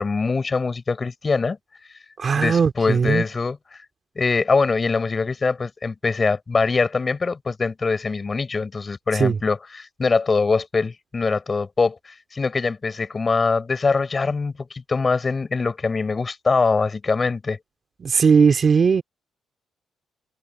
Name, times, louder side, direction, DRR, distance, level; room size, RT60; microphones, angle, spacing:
voice 1, 0.0-1.6 2.4-3.6 4.1-17.6, left 4 dB, 30° left, 6.6 m, -23 dB
voice 2, 2.2-3.2 9.1-9.4 18.0-19.0, right 5 dB, 45° right, 3.1 m, -18 dB
cardioid pair, 90°, 0 cm